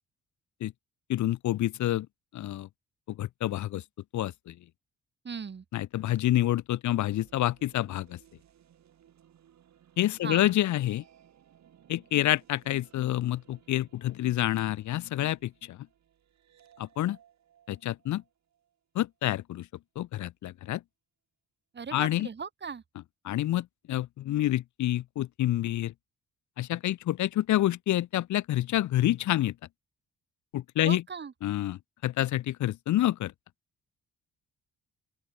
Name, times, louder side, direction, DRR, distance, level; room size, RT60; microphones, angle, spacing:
voice 1, 1.1-2.1 2.3-2.7 3.1-3.8 4.1-4.5 5.7-8.2 10.0-11.0 11.9-15.8 16.8-17.2 17.7-18.2 18.9-19.7 20.0-20.8 21.9-22.3 23.2-25.9 26.6-29.5 30.5-31.0 31.4-33.3, left 14 dB, 70° left, 1.0 m, -28 dB
voice 2, 5.2-5.6 10.2-10.5 21.7-22.8 30.8-31.3, right 6 dB, 35° right, 2.3 m, -38 dB
sound 1, 6.9-19.1, right 10 dB, 65° right, 6.6 m, -62 dB
open air
cardioid pair, 90°, 30 cm